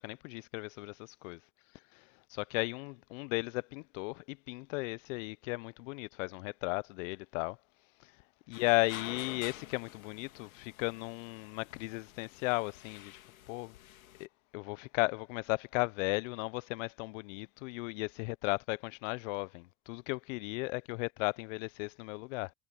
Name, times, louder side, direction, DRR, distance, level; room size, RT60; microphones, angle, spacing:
voice 1, 0.0-1.4 1.9-7.6 8.0-8.1 8.5-13.2 13.5-13.8 14.2-14.3 14.5-22.5, left 26 dB, 65° left, 0.9 m, -35 dB
sound 1, 8.5-14.3, left 13 dB, 80° left, 2.3 m, -50 dB
hypercardioid pair, 80°, 41 cm